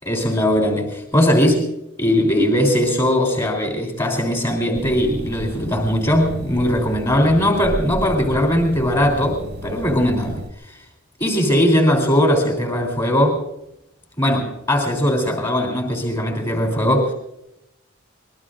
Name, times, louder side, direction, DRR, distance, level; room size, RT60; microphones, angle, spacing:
voice 1, 0.0-1.7 2.0-10.8 11.2-13.4 14.2-17.1, equal, 25° left, 1 dB, 3.3 m, -19 dB
sound 1, 4.7-10.5, equal, 55° right, 1.4 m, -32 dB
25.0 x 21.0 x 2.5 m, 0.85 s
head